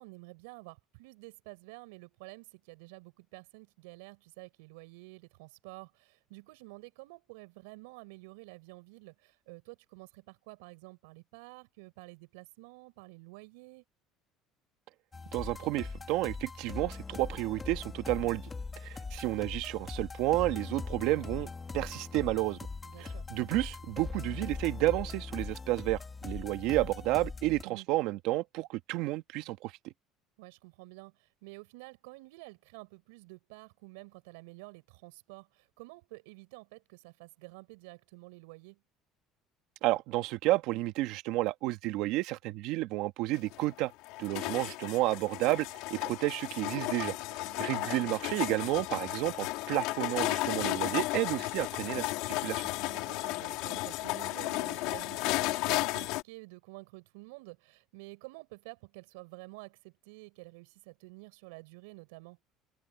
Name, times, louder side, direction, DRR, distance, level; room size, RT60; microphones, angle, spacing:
voice 1, 0.0-13.8 22.8-23.3 27.6-27.9 30.4-38.8 47.4-48.1 52.8-62.4, right 26 dB, 90° right, 7.4 m, -50 dB
sound 1, 15.1-27.6, left 4 dB, 20° left, 2.4 m, -41 dB
voice 2, 15.3-18.4 18.8-21.5 21.7-22.6 23.0-29.9 39.8-43.9 44.2-47.1 47.6-52.1 52.4-52.6, right 18 dB, 75° right, 1.5 m, -31 dB
sound 2, 43.3-56.2, left 20 dB, 75° left, 3.3 m, -34 dB
open air
supercardioid pair, 105°, 0 cm